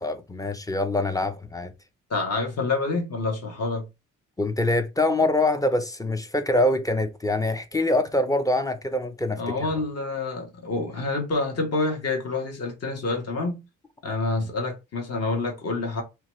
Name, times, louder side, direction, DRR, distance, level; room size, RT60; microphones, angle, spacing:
voice 1, 0.0-1.7 4.4-9.7, left 2 dB, 10° left, 0.5 m, -24 dB
voice 2, 2.1-3.9 9.4-13.6 14.0-16.0, left 3 dB, 50° left, 1.2 m, -27 dB
2.9 x 2.3 x 3.0 m
cardioid pair, 90°, 32 cm